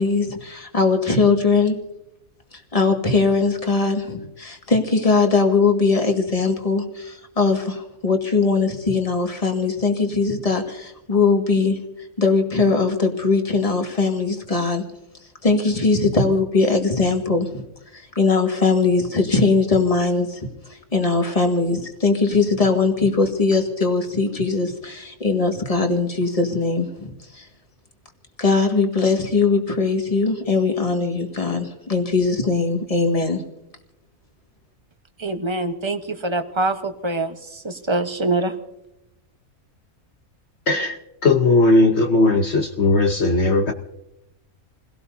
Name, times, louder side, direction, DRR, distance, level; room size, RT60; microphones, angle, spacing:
voice 1, 0.0-1.8 2.7-11.8 12.2-14.8 15.4-17.6 17.9-20.4 20.9-27.5 28.4-33.4, left 4 dB, 25° left, 1.9 m, -20 dB
voice 2, 35.2-38.5, right 2 dB, 20° right, 1.0 m, -24 dB
voice 3, 41.2-43.7, left 2 dB, 55° left, 1.1 m, -17 dB
28.5 x 17.0 x 2.7 m
omnidirectional pair, 1.5 m